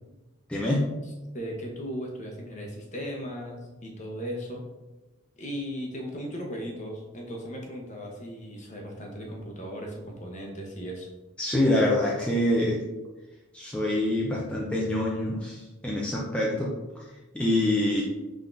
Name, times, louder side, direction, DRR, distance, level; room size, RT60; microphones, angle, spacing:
voice 1, 0.5-0.9 11.4-12.8 13.5-16.7 17.3-18.0, left 1 dB, 5° left, -5 dB, 0.5 m, -25 dB
voice 2, 1.0-4.6 5.4-11.1, equal, 35° left, 0 dB, 0.9 m, -37 dB
5.6 x 3.7 x 2.6 m, 1.1 s
head